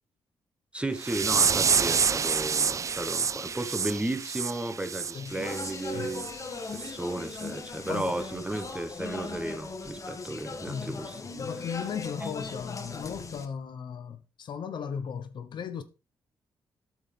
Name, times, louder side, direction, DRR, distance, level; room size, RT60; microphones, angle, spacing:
voice 1, 0.7-6.3 6.7-11.2 12.2-12.3, right 1 dB, 15° right, 1.3 m, -34 dB
sound 1, 1.0-5.7 6.1-6.3 6.7-6.9 7.4-7.5 8.0-8.1, right 6 dB, 40° right, 0.4 m, -28 dB
Speech, 5.2-13.4, left 4 dB, 40° left, 1.5 m, -39 dB
voice 2, 10.7-11.0 11.4-15.8, left 7 dB, 65° left, 0.9 m, -36 dB
9.2 x 6.4 x 3.4 m
cardioid pair, 80°, 8 cm